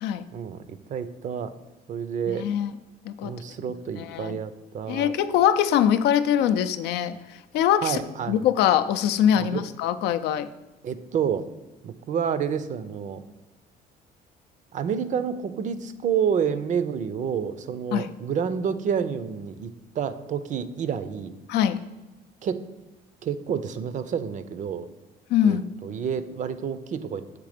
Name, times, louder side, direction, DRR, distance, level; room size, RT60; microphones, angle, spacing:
voice 1, 0.3-1.5 1.9-2.5 3.2-5.1 7.8-8.5 9.4-9.6 10.8-11.5 11.8-13.2 14.7-21.3 22.4-22.6 23.2-24.9 25.4-27.4, right 7 dB, 45° right, 13 dB, 0.5 m, -29 dB
voice 2, 2.3-2.7 3.1-3.3 4.0-4.4 4.9-7.1 7.5-8.0 8.3-10.5 17.9-18.1 21.5-21.8 25.3-25.7, left 10 dB, 80° left, 11 dB, 0.4 m, -22 dB
7.4 x 3.4 x 5.0 m, 1.1 s
cardioid pair, 110°, 17 cm